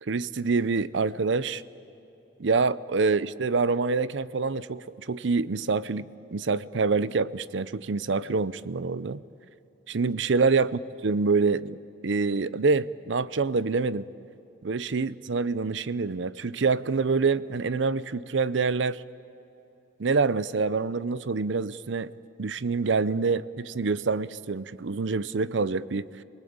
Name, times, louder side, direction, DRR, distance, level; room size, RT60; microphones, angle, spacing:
voice 1, 0.0-1.6 2.4-9.2 9.9-10.7 11.0-14.1 14.6-19.0 20.0-22.1 22.4-26.1, right 4 dB, 80° right, 18 dB, 0.6 m, -26 dB
27.0 x 19.5 x 8.8 m, 2.8 s
head